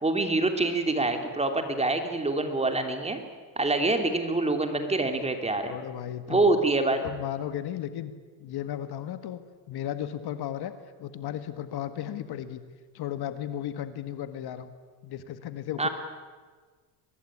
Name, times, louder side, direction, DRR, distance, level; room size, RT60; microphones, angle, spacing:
voice 1, 0.0-3.2 3.6-5.8 6.3-7.0 15.8-15.9, right 2 dB, 15° right, 6 dB, 3.1 m, -25 dB
voice 2, 5.6-6.5 7.0-8.1 8.4-9.4 9.7-10.7 11.0-12.6 12.9-14.7 15.0-15.9, left 11 dB, 55° left, 11 dB, 1.7 m, -35 dB
23.5 x 19.5 x 10.0 m, 1.5 s
cardioid pair, 120°, 44 cm